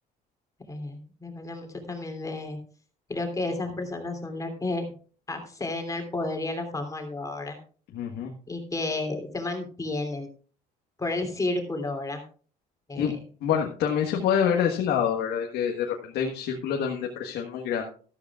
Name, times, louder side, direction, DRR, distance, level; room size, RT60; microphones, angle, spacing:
voice 1, 0.7-2.6 3.1-4.9 5.3-7.6 8.5-10.3 11.0-12.2 12.9-13.2, left 2 dB, 20° left, 4 dB, 3.0 m, -32 dB
voice 2, 7.9-8.3 12.9-13.1 13.4-17.9, left 8 dB, 80° left, 1 dB, 1.5 m, -26 dB
13.0 x 13.0 x 2.4 m, 0.41 s
cardioid pair, 110°, 17 cm